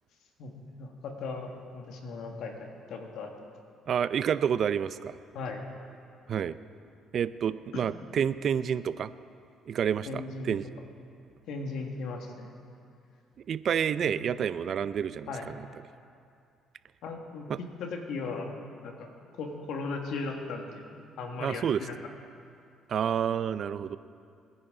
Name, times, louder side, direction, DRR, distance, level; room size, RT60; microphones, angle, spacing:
voice 1, 0.8-3.5 5.3-5.6 7.7-7.8 10.1-10.6 11.5-12.6 14.0-14.1 15.3-15.4 17.0-18.6 18.8-19.1 19.4-21.9, left 3 dB, 75° left, 2 dB, 1.9 m, -37 dB
voice 2, 3.9-5.2 6.3-6.6 7.1-9.1 9.7-10.7 13.5-15.5 17.5-17.6 21.4-21.8 22.9-24.0, right 8 dB, 55° right, 15 dB, 0.4 m, -29 dB
22.0 x 10.0 x 3.9 m, 2.4 s
cardioid pair, 85°, 0 cm